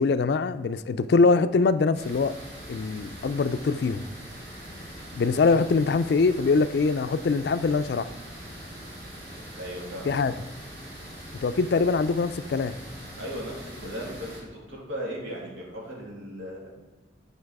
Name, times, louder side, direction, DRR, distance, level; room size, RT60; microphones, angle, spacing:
voice 1, 0.0-2.3 2.7-4.0 5.1-8.1 10.1-10.3 11.4-12.7, left 4 dB, 60° left, 13 dB, 0.3 m, -23 dB
sound 1, 1.9-14.4, equal, 55° right, 2.6 m, -42 dB
voice 2, 9.6-10.1 13.1-16.7, equal, 90° right, -3 dB, 2.5 m, -37 dB
8.7 x 5.4 x 4.7 m, 1.1 s
head